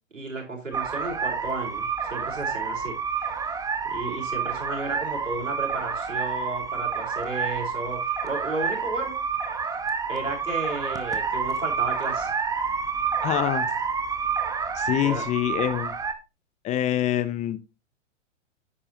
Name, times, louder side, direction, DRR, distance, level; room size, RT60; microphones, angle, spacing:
voice 1, 0.1-3.0 3.8-9.2 10.1-12.3 14.9-15.2, right 3 dB, 85° right, 1 dB, 4.5 m, -33 dB
sound 1, 0.7-16.1, right 6 dB, 10° right, 0.9 m, -29 dB
voice 2, 13.2-13.7 14.7-15.9 16.6-17.6, left 12 dB, 20° left, 14 dB, 0.6 m, -25 dB
10.0 x 8.5 x 2.9 m, 0.28 s
figure-of-eight pair, 110°, 38 cm